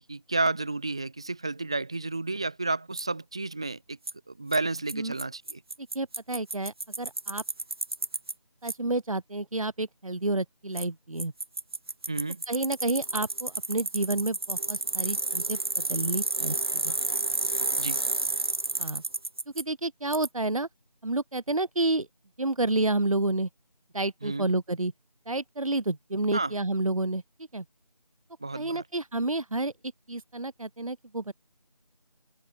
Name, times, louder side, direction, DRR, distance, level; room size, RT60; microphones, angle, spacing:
voice 1, 0.0-4.0 4.3-5.6 12.1-12.4 17.8-18.0 24.2-24.5 26.3-26.5 28.4-28.8, right 3 dB, 10° right, 1.2 m, -31 dB
Bicycle, 3.0-3.1 4.1-4.2 4.5-4.6 4.9-5.0 5.2-5.3 5.5-8.3 8.7-8.8 10.8-10.9 11.2-19.6 20.1-20.3, right 2 dB, 35° right, 2.1 m, -30 dB
voice 2, 5.8-7.4 8.6-11.3 12.5-17.0 18.8-19.0 19.5-20.7 21.0-22.1 22.4-23.5 23.9-24.9 25.3-27.2 27.5-27.6 28.5-29.7 30.1-31.3, right 2 dB, 55° right, 2.1 m, -30 dB
open air
figure-of-eight pair, 170°, 21 cm